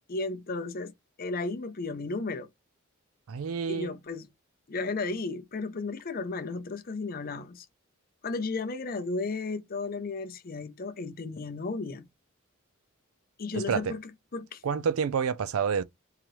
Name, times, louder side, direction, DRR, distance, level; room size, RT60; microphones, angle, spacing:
voice 1, 0.1-2.5 3.7-4.3 4.7-7.7 8.2-12.1 13.4-14.0 14.3-14.6, left 3 dB, 40° left, 0.5 m, -34 dB
voice 2, 3.3-3.9 13.5-13.9 14.6-15.8, right 6 dB, 75° right, 0.4 m, -28 dB
3.8 x 2.9 x 3.1 m
head